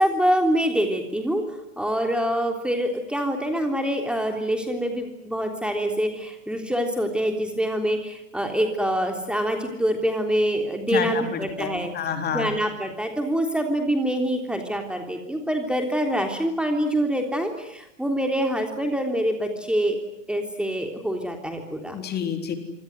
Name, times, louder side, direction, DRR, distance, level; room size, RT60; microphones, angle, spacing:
voice 1, 0.0-1.4 1.8-11.9 12.3-20.0 20.3-22.0, equal, 5° right, 4 dB, 3.4 m, -25 dB
voice 2, 10.9-12.5 21.9-22.6, left 7 dB, 25° left, 6 dB, 3.8 m, -28 dB
26.5 x 26.5 x 8.1 m, 0.81 s
figure-of-eight pair, 95°, 38 cm